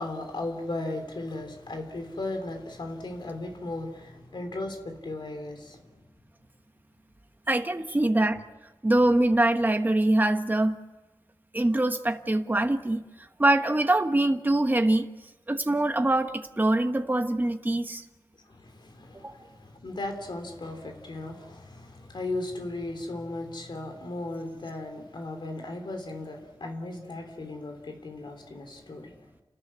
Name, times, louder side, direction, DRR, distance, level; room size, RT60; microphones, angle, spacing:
voice 1, 0.0-5.8 18.6-29.1, left 2 dB, 70° left, 4 dB, 3.4 m, -36 dB
voice 2, 7.5-8.4 8.8-10.8 11.5-13.0 13.4-15.1 15.5-18.0 19.2-19.4, right 1 dB, 25° right, 6 dB, 1.3 m, -24 dB
30.0 x 14.0 x 9.8 m, 1.2 s
wide cardioid pair, 80°, 8 cm